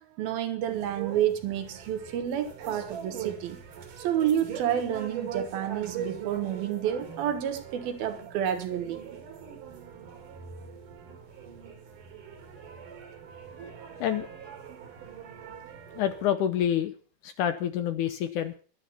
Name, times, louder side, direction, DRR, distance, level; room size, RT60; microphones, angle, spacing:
voice 1, 0.0-3.6 4.0-9.0, right 10 dB, 80° right, 3.2 m, -29 dB
sound 1, 0.7-16.3, right 7 dB, 60° right, 3.4 m, -42 dB
voice 2, 16.0-16.9 17.2-18.5, left 10 dB, 75° left, 2.0 m, -27 dB
11.5 x 11.5 x 5.7 m
omnidirectional pair, 4.3 m